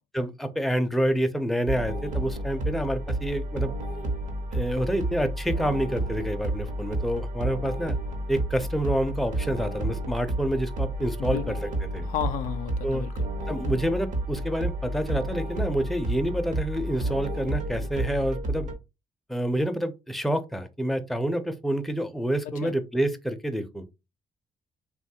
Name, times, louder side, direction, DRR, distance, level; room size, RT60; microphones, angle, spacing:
voice 1, 0.1-3.7 4.5-8.0 8.3-11.6 11.9-12.1 12.8-13.0 13.5-18.7 19.3-23.9, right 1 dB, ahead, 0.5 m, -28 dB
sound 1, 1.7-18.7, right 1 dB, 65° right, 1.0 m, -31 dB
voice 2, 11.2-11.6 12.0-13.1 22.5-22.7, left 10 dB, 80° left, 0.4 m, -32 dB
3.0 x 2.3 x 2.7 m
cardioid pair, 70°, 13 cm